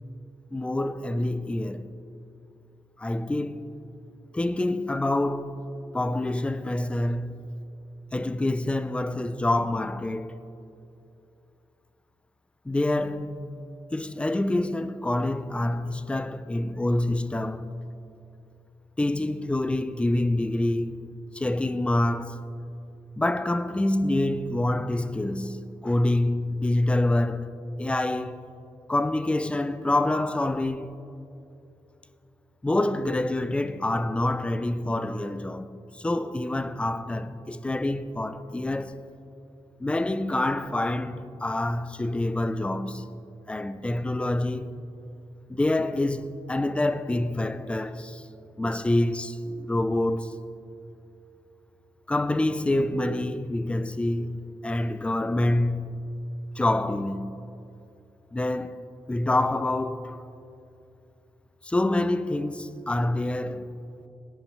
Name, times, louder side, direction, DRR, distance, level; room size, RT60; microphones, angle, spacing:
voice 1, 0.5-1.9 3.0-3.7 4.3-5.7 5.9-7.5 8.1-10.4 12.7-13.4 13.9-17.8 19.0-21.1 21.3-22.4 23.2-28.4 28.9-31.0 32.6-39.0 39.8-43.1 43.5-44.8 45.5-48.2 48.6-50.4 52.1-56.1 56.6-57.5 58.3-60.2 61.6-63.7, left 1 dB, 10° left, 0.4 m, -27 dB
20.5 x 10.5 x 3.3 m
wide cardioid pair, 145°, 10 cm